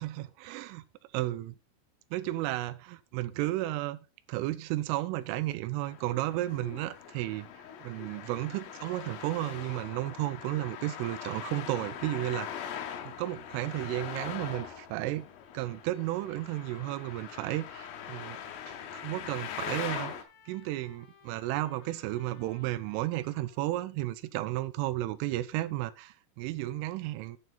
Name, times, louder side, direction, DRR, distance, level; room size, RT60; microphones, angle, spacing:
voice 1, 0.0-0.8 1.1-1.5 2.1-4.0 4.3-7.5 7.8-12.7 13.0-15.3 15.5-18.4 18.7-20.1 20.5-27.4, right 16 dB, 80° right, 3.1 m, -33 dB
Traffic noise roadway noise, 5.8-20.2, left 9 dB, 90° left, 3.8 m, -42 dB
Trumpet, 16.4-23.8, left 6 dB, 65° left, 4.4 m, -59 dB
9.2 x 7.8 x 4.0 m
omnidirectional pair, 5.9 m